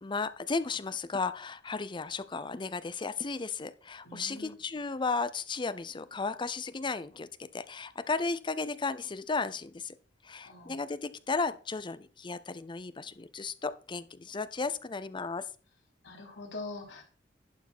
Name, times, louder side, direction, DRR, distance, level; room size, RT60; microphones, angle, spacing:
voice 1, 0.0-7.3 7.5-9.9 10.2-15.4, left 4 dB, 25° left, 14 dB, 0.5 m, -34 dB
voice 2, 4.0-4.6 10.4-10.8 16.0-17.0, left 2 dB, 75° left, 0 dB, 3.2 m, -43 dB
11.5 x 4.6 x 6.1 m, 0.39 s
head